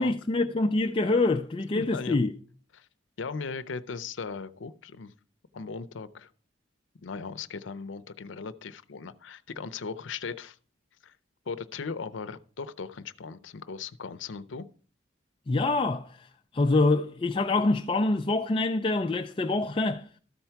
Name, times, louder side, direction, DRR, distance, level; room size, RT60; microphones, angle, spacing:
voice 1, 0.0-2.3 15.5-16.3 16.5-20.1, left 2 dB, 25° left, 0.4 m, -25 dB
voice 2, 1.8-2.2 2.7-2.9 3.2-5.1 5.5-6.3 7.0-10.6 11.0-11.2 11.5-14.7, left 5 dB, 80° left, 0.6 m, -38 dB
13.0 x 4.5 x 5.7 m
head